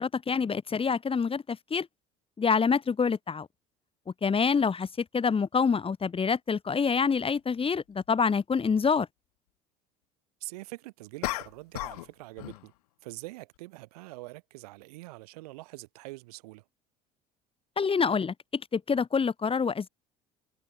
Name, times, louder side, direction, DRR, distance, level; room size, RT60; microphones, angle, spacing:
voice 1, 0.0-1.9 2.4-3.5 4.2-9.1 17.8-19.9, left 5 dB, 30° left, 2.0 m, -26 dB
sound 1, 7.2-7.3 11.2-12.1 12.4-12.7, left 19 dB, 80° left, 0.7 m, -34 dB
voice 2, 10.4-12.7 13.0-16.6, right 21 dB, 80° right, 4.8 m, -44 dB
hypercardioid pair, 70°, 19 cm